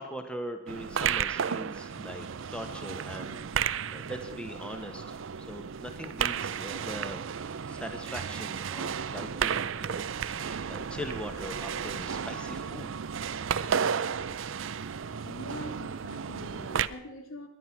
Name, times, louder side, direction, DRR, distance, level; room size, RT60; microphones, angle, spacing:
voice 1, 0.0-2.3 2.5-5.0 5.5-7.2 7.6-12.9, equal, 5° left, 6 dB, 1.3 m, -41 dB
sound 1, 0.7-16.9, right 7 dB, 65° right, 0.5 m, -33 dB
voice 2, 14.9-17.5, equal, 75° left, 4 dB, 2.8 m, -43 dB
20.0 x 11.0 x 5.9 m, 0.82 s
head